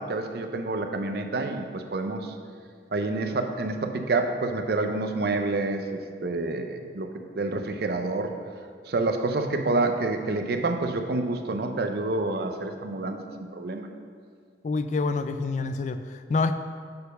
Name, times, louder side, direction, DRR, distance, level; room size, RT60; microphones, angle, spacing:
voice 1, 0.0-2.3 2.9-7.1 7.3-8.3 8.9-13.9, right 2 dB, 60° right, 5 dB, 0.6 m, -28 dB
voice 2, 14.6-16.5, left 3 dB, 40° left, 9 dB, 0.3 m, -27 dB
6.8 x 4.5 x 5.3 m, 2.1 s
head